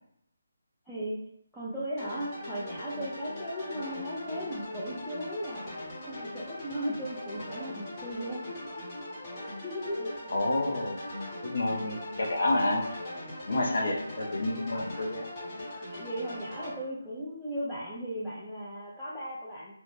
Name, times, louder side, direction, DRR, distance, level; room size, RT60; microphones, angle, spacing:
voice 1, 0.9-1.2 1.5-8.8 9.6-10.1 13.4-14.0 15.9-19.7, equal, ahead, -13 dB, 0.5 m, -37 dB
sound 1, 2.0-16.7, left 1 dB, 25° left, 1.0 m, -40 dB
voice 2, 10.3-11.0 11.4-12.9 13.5-15.3 15.6-15.8, left 2 dB, 65° left, 0 dB, 0.5 m, -29 dB
2.4 x 2.1 x 3.2 m, 0.72 s
figure-of-eight pair, 155°, 0 cm